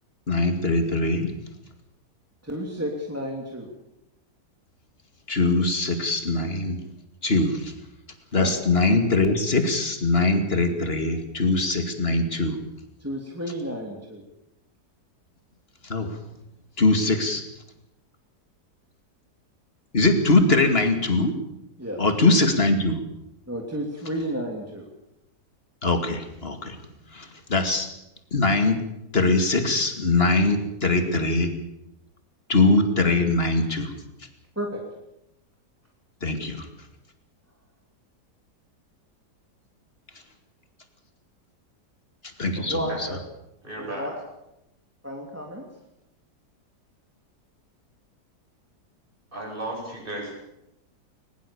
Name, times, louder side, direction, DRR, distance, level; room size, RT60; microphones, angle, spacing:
voice 1, 0.3-1.3 5.3-6.8 7.2-7.7 8.3-12.6 15.8-16.2 16.8-17.4 19.9-21.4 22.0-23.0 25.8-26.8 27.1-27.9 28.3-28.8 29.1-31.5 32.5-33.9 36.2-36.7 42.4-43.2, left 2 dB, 35° left, 6 dB, 2.6 m, -22 dB
voice 2, 2.4-3.7 8.4-8.5 13.0-14.2 21.8-22.3 23.5-24.8 34.6-34.8 42.6-43.2 43.8-44.1 45.0-45.6, equal, 10° right, 0 dB, 2.8 m, -32 dB
voice 3, 43.6-44.1 49.3-50.3, right 1 dB, 30° right, -1 dB, 8.2 m, -34 dB
21.5 x 21.0 x 7.1 m, 0.87 s
omnidirectional pair, 1.8 m